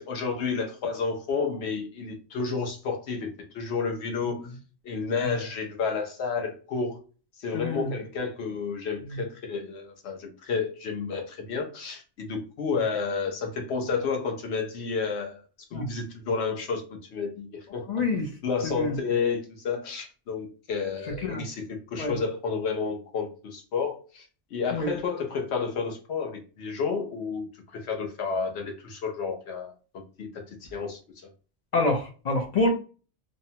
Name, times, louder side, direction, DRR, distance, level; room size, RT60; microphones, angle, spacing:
voice 1, 0.0-4.6 4.8-7.0 7.4-15.4 15.7-17.9 18.4-24.2 24.5-27.5 27.7-31.3, left 5 dB, 70° left, 1.0 m, -31 dB
voice 2, 7.5-7.9 15.7-15.9 17.9-18.3 18.6-18.9 21.2-21.4 22.0-22.1 24.7-24.9 31.7-32.7, left 2 dB, 55° left, 0.5 m, -26 dB
2.7 x 2.1 x 2.7 m
omnidirectional pair, 1.2 m